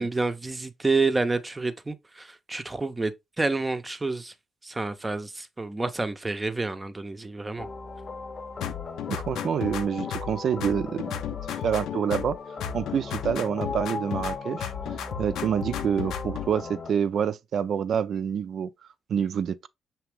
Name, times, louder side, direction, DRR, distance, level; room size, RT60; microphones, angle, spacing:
voice 1, 0.0-3.1 3.4-4.3 4.6-7.7, right 3 dB, 20° right, 0.6 m, -28 dB
sound 1, 7.6-16.9, left 4 dB, 40° left, 0.7 m, -38 dB
sound 2, 8.6-10.4 10.6-12.4 12.6-14.4 14.6-16.5, left 10 dB, 80° left, 0.5 m, -34 dB
voice 2, 9.1-11.2 11.6-12.4 12.7-14.7 15.2-18.7 19.1-19.7, right 8 dB, 60° right, 0.4 m, -27 dB
5.9 x 2.8 x 3.2 m
cardioid pair, 90°, 0 cm